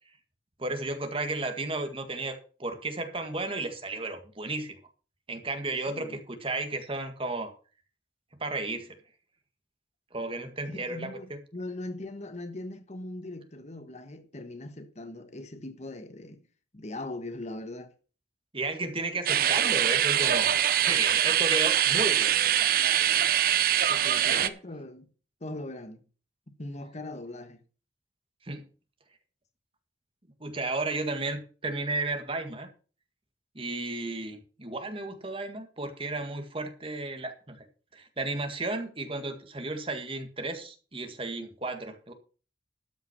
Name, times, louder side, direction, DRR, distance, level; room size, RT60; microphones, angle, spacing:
voice 1, 0.6-4.8 5.3-7.5 8.4-9.0 10.1-11.4 18.5-20.5 20.8-22.4 24.3-24.5 28.5-28.6 30.4-32.7 33.6-37.7 37.9-42.1, right 2 dB, 30° right, 1.8 m, -33 dB
voice 2, 5.9-6.2 10.6-16.4 16.7-17.9 23.9-25.1 25.4-26.0 26.5-27.6, left 2 dB, 40° left, 1.3 m, -40 dB
sound 1, 19.3-24.5, right 10 dB, 55° right, 0.7 m, -23 dB
13.0 x 5.9 x 6.2 m
head